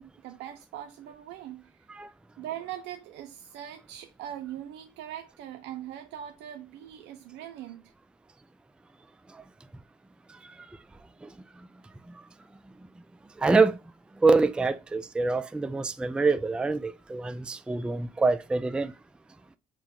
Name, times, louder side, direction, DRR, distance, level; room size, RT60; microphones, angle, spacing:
voice 1, 0.0-1.9 2.4-7.9, right 11 dB, 80° right, 0.5 m, -41 dB
voice 2, 13.4-13.8 14.2-18.9, right 3 dB, 5° right, 0.3 m, -25 dB
4.6 x 2.1 x 3.7 m
supercardioid pair, 75°, 18 cm